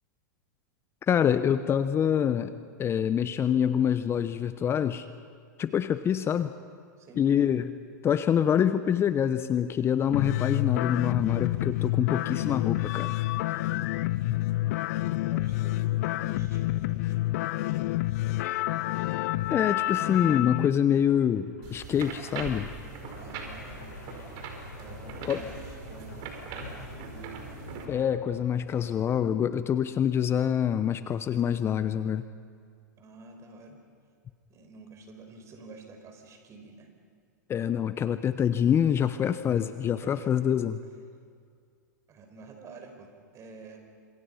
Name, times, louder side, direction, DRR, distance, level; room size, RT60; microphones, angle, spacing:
voice 1, 1.1-2.5 2.8-5.1 5.6-6.5 7.2-7.7 8.0-13.1 14.2-14.3 19.5-22.7 25.2-25.4 27.9-32.2 37.5-40.8, left 9 dB, 25° left, 12 dB, 0.9 m, -26 dB
sound 1, 10.1-20.7, left 17 dB, 60° left, 0.6 m, -28 dB
voice 2, 14.6-17.2 23.2-23.9 24.8-27.3 33.0-33.8 34.5-36.9 39.1-39.4 40.0-40.4 42.1-43.8, right 3 dB, 30° right, 4 dB, 5.5 m, -49 dB
sound 2, 21.2-29.2, left 3 dB, 85° left, 7.4 m, -48 dB
sound 3, 21.6-27.8, right 5 dB, 50° right, 5.1 m, -41 dB
30.0 x 27.0 x 5.7 m, 2.1 s
hypercardioid pair, 105°, 10 cm